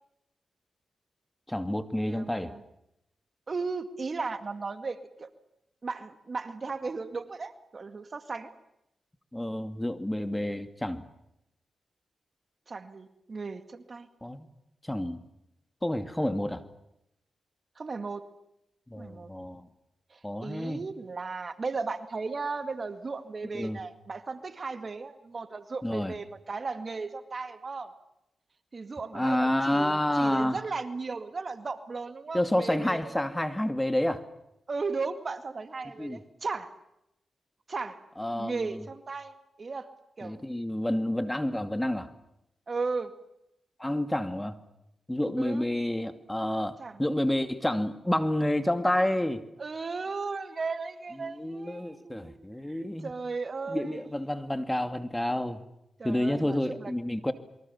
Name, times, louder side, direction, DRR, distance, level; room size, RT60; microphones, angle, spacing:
voice 1, 1.5-2.5 9.3-11.0 14.2-14.5 14.9-15.2 15.8-16.6 18.9-19.7 20.2-20.8 23.5-23.8 25.8-26.1 29.1-30.6 32.3-34.2 36.0-36.2 38.2-38.8 40.2-42.1 43.8-44.6 45.1-49.4 51.2-53.1 53.7-55.6 56.0-57.3, left 1 dB, 10° left, 10 dB, 2.5 m, -29 dB
voice 2, 2.1-2.6 3.5-5.3 5.8-8.5 12.7-14.1 17.8-18.2 19.0-19.3 20.1-27.9 28.7-33.2 34.7-36.7 37.7-38.0 38.3-39.3 39.6-39.9 40.2-40.5 42.7-43.1 45.4-45.7 46.8-47.0 49.6-54.3 56.0-56.9, right 4 dB, 45° right, 10 dB, 2.1 m, -36 dB
28.0 x 23.5 x 7.2 m, 0.83 s
cardioid pair, 55°, 0 cm